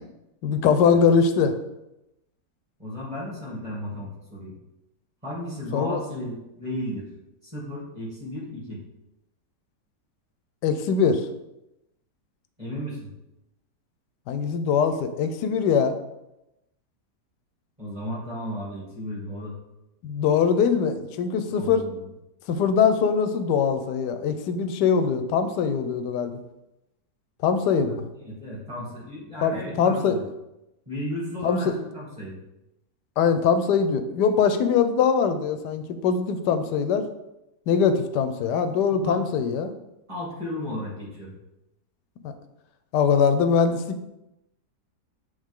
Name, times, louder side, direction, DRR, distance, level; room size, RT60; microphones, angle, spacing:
voice 1, 0.4-1.5 5.7-6.0 10.6-11.3 14.3-15.9 20.0-21.9 22.5-26.4 27.4-28.1 29.4-30.2 31.4-31.7 33.2-37.1 37.7-39.7 42.2-42.3 42.9-44.1, left 6 dB, 80° left, 9 dB, 1.2 m, -22 dB
voice 2, 2.8-4.6 5.2-7.1 7.4-8.8 12.6-13.1 17.8-19.5 21.5-22.0 28.2-30.2 30.9-32.4 38.9-39.2 40.1-41.3, equal, 20° right, -6 dB, 2.4 m, -34 dB
8.0 x 3.4 x 3.6 m, 0.91 s
omnidirectional pair, 1.8 m